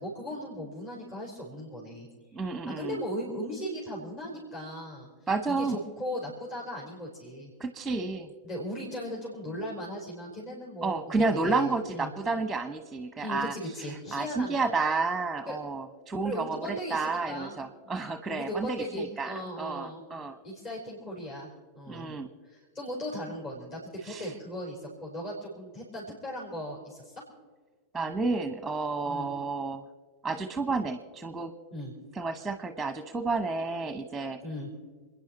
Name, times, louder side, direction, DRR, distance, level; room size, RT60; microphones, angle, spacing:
voice 1, 0.0-2.1 2.7-5.1 5.5-7.5 8.4-11.0 11.4-12.1 13.2-14.7 15.5-15.6 16.2-17.6 17.8-20.0 20.4-21.5 21.7-22.1 22.4-27.1 29.0-29.3 31.7-31.9 34.4-34.7, equal, 35° left, -4 dB, 4.5 m, -37 dB
voice 2, 2.3-3.0 5.3-5.8 7.6-8.3 10.8-20.4 21.9-22.3 24.0-24.3 27.9-29.8 30.2-31.5 32.1-34.4, right 3 dB, 5° right, 9 dB, 1.1 m, -31 dB
28.5 x 10.0 x 4.3 m, 1.5 s
figure-of-eight pair, 90°, 0 cm